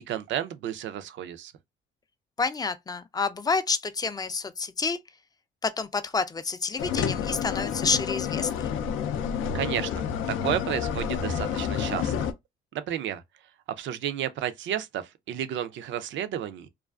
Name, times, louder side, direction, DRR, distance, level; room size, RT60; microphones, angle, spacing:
voice 1, 0.1-1.5 9.5-9.9 10.3-12.1 12.7-13.2 13.8-16.7, right 10 dB, 70° right, 0.4 m, -31 dB
voice 2, 2.4-5.0 5.6-8.7, left 4 dB, 20° left, 0.3 m, -29 dB
sound 1, 6.8-12.3, left 8 dB, 85° left, 0.4 m, -29 dB
2.4 x 2.3 x 2.3 m
cardioid pair, 90°, 20 cm